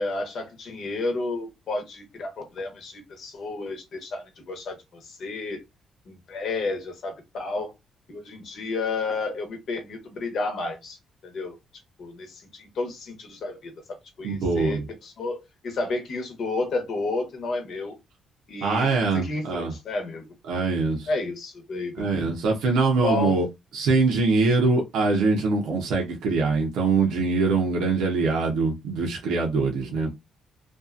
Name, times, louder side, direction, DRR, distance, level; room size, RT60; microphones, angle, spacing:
voice 1, 0.0-5.6 6.1-7.7 8.1-11.0 11.2-11.6 12.0-13.7 14.2-17.9 18.5-20.3 21.1-22.1 23.0-23.4 29.8-29.9, left 3 dB, 60° left, 0.9 m, -31 dB
voice 2, 14.2-14.8 18.6-19.7 20.5-21.1 22.0-23.5 23.7-30.1, right 4 dB, 85° right, 0.6 m, -23 dB
2.6 x 2.3 x 2.4 m
cardioid pair, 90°, 0 cm